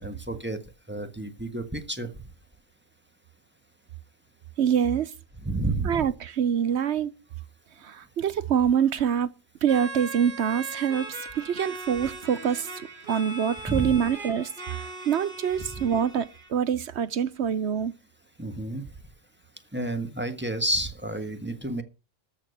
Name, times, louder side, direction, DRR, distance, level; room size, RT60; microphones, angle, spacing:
voice 1, 0.0-0.6 0.9-2.1 5.4-6.1 13.7-14.0 18.4-18.9 19.7-21.8, right 2 dB, 10° right, 1.4 m, -30 dB
voice 2, 4.6-5.1 5.8-7.1 7.8-9.3 9.6-12.7 13.1-17.9, right 8 dB, 60° right, 1.0 m, -25 dB
sound 1, 9.6-16.5, right 2 dB, 40° right, 2.3 m, -39 dB
13.5 x 6.6 x 6.7 m
omnidirectional pair, 1.3 m